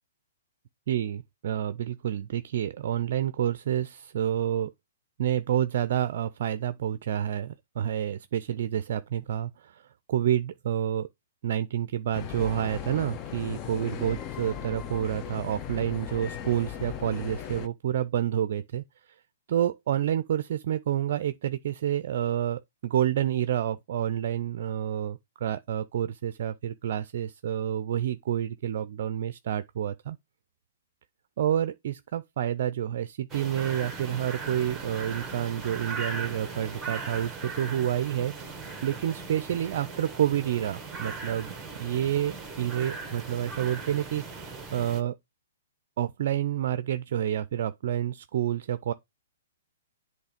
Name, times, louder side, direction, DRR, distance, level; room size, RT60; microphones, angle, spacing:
voice 1, 0.9-4.7 5.2-9.8 10.1-11.1 11.4-18.8 19.5-30.2 31.4-38.6 38.8-45.2 46.0-48.9, right 10 dB, 60° right, 0.4 m, -29 dB
sound 1, 12.1-17.7, left 9 dB, 30° left, 0.7 m, -37 dB
sound 2, 33.3-45.0, right 4 dB, 10° right, 1.5 m, -39 dB
8.1 x 3.2 x 5.0 m
hypercardioid pair, 135°, 0 cm